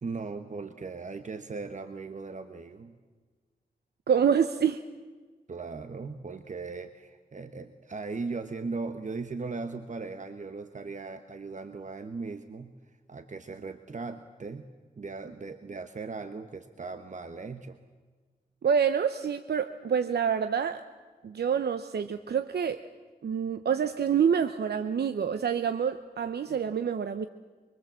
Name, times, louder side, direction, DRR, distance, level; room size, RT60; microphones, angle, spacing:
voice 1, 0.0-3.0 5.5-12.8 13.1-14.7 15.0-17.8 26.5-26.6, right 4 dB, 50° right, 9 dB, 1.3 m, -38 dB
voice 2, 4.1-4.8 18.6-20.8 21.2-22.8 23.2-27.3, right 7 dB, 85° right, 10 dB, 0.9 m, -27 dB
25.0 x 24.5 x 7.6 m, 1.4 s
wide cardioid pair, 95°, 16 cm